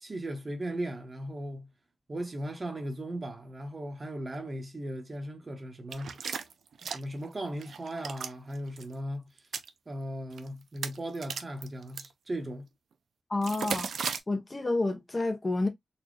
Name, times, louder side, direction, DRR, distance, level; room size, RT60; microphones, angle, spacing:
voice 1, 0.0-1.7 2.1-6.1 6.8-9.2 9.9-12.7, right 1 dB, 30° right, 1.0 m, -37 dB
sound 1, 5.9-7.3 7.6-8.3 8.7-8.8 9.4-9.7 10.3-10.5 10.8-12.1 13.4-14.2, right 6 dB, 85° right, 0.5 m, -35 dB
voice 2, 13.3-13.9 14.3-15.7, left 2 dB, 25° left, 0.8 m, -29 dB
4.2 x 2.4 x 3.1 m
wide cardioid pair, 125°, 0 cm